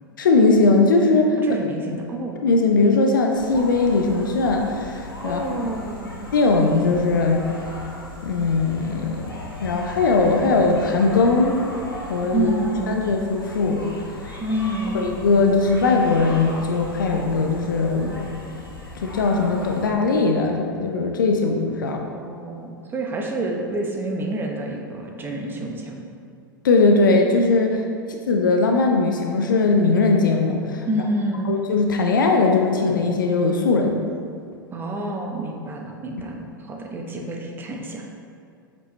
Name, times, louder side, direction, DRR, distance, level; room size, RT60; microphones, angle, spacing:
voice 1, 0.2-1.4 2.4-5.6 6.3-7.4 8.2-9.3 9.6-11.6 12.1-12.5 12.9-13.9 14.9-18.1 19.0-22.0 26.6-27.8 28.3-30.9 31.5-34.0, left 3 dB, 65° left, 2 dB, 0.7 m, -19 dB
voice 2, 1.4-2.4 5.2-6.2 12.3-13.1 14.4-15.2 22.1-26.0 30.9-31.6 34.7-38.0, right 1 dB, 20° right, 1 dB, 0.9 m, -28 dB
sound 1, 3.3-19.9, left 1 dB, 85° left, 1.2 m, -37 dB
7.8 x 5.2 x 3.2 m, 2.4 s
figure-of-eight pair, 90°, 12 cm